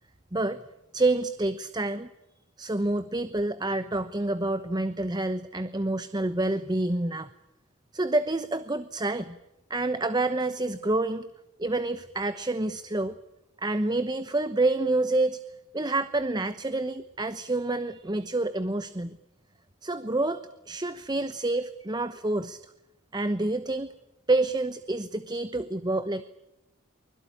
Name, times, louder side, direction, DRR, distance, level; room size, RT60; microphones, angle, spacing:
voice 1, 0.3-0.6 0.9-2.1 2.6-7.3 7.9-9.4 9.7-11.3 11.6-13.1 13.6-15.4 15.7-19.2 19.8-20.4 20.7-22.6 23.1-23.9 24.3-26.2, right 2 dB, 20° right, 12 dB, 0.9 m, -28 dB
24.0 x 21.5 x 9.9 m, 0.91 s
head